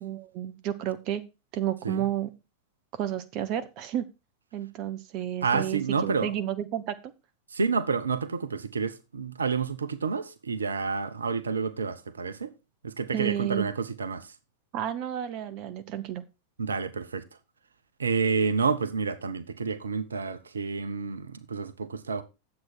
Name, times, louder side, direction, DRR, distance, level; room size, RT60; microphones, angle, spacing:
voice 1, 0.0-1.2 1.5-2.3 2.9-4.0 4.5-7.0 13.1-13.7 14.7-16.2, right 11 dB, 40° right, 0.8 m, -31 dB
voice 2, 5.4-6.3 7.5-12.5 12.8-14.3 16.6-17.2 18.0-22.2, right 5 dB, 70° right, 0.9 m, -29 dB
9.6 x 7.9 x 4.4 m
figure-of-eight pair, 90°, 0 cm